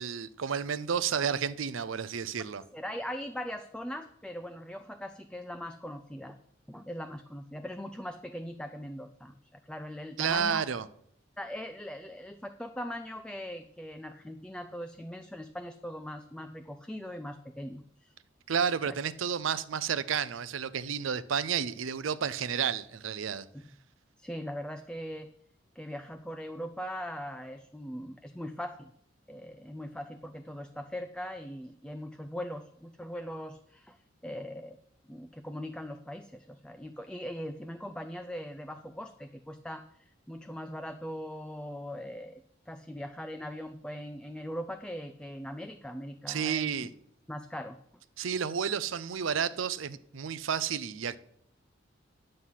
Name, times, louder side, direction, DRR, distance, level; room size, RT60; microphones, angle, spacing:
voice 1, 0.0-2.6 10.2-10.9 18.5-23.5 46.3-46.9 48.2-51.2, right 7 dB, 85° right, 0.5 m, -31 dB
voice 2, 2.7-6.4 6.7-10.7 11.4-18.1 18.8-19.0 23.5-23.6 24.2-25.3 25.8-28.9 29.3-34.8 35.1-46.9 47.3-47.8, equal, 5° left, 0.5 m, -40 dB
9.9 x 7.7 x 5.7 m
head